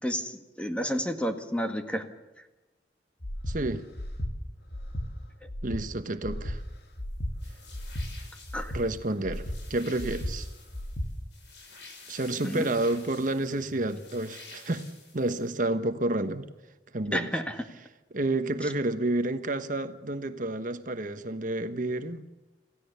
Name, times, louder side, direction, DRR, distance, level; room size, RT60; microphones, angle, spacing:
voice 1, 0.0-2.0 8.5-8.7 12.4-12.7 17.1-17.6, equal, 5° left, 5 dB, 1.8 m, -30 dB
Breathing, 3.2-3.6 4.0-4.3 4.7-5.1 5.5-5.8 6.2-6.6 7.0-7.3 7.7-8.1 8.5-8.8 9.2-9.6 10.0-10.3 10.7-11.1, equal, 65° left, 2.4 m, -34 dB
voice 2, 3.5-3.8 5.6-6.6 8.7-9.4 9.7-10.5 12.1-14.9 15.1-16.5 16.9-17.3 18.1-22.2, right 2 dB, 50° right, 8 dB, 1.2 m, -30 dB
sound 1, 7.4-15.6, left 4 dB, 80° left, 6.5 m, -51 dB
27.5 x 16.0 x 6.9 m, 1.1 s
head